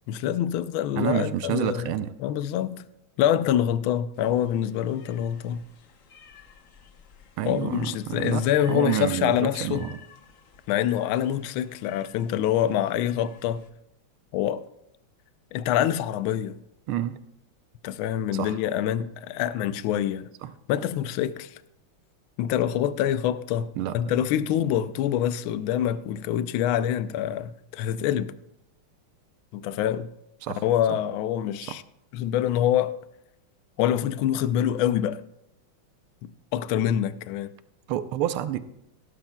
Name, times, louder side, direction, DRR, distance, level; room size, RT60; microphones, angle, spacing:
voice 1, 0.1-1.9 2.2-2.9 3.2-5.6 7.5-9.9 10.7-13.6 14.3-14.6 15.5-16.6 17.8-20.3 20.7-21.6 22.4-28.3 29.5-30.1 30.5-31.8 32.1-32.9 33.8-35.2 36.2-37.5, left 10 dB, 80° left, 1.4 m, -25 dB
voice 2, 1.0-2.1 7.4-10.0 16.9-17.2 18.3-18.5 20.4-20.5 23.8-24.0 30.4-30.6 30.9-31.0 31.7-31.8 37.9-38.6, right 11 dB, 85° right, 1.6 m, -29 dB
sound 1, 4.1-13.7, left 7 dB, 50° left, 1.0 m, -53 dB
18.0 x 12.0 x 2.2 m
omnidirectional pair, 2.3 m